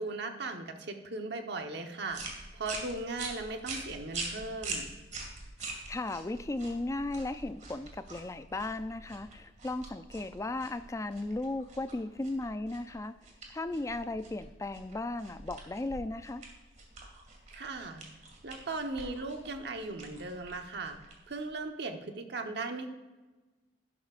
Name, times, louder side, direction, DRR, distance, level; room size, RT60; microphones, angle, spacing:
voice 1, 0.0-4.9 17.5-18.0 18.4-21.0 21.3-22.9, right 3 dB, 60° right, 5 dB, 1.1 m, -38 dB
sound 1, 2.1-21.7, right 3 dB, 40° right, 2.1 m, -45 dB
voice 2, 5.6-13.2 13.5-16.4, left 2 dB, 15° left, 11 dB, 0.4 m, -36 dB
11.5 x 11.5 x 2.5 m, 1.2 s
head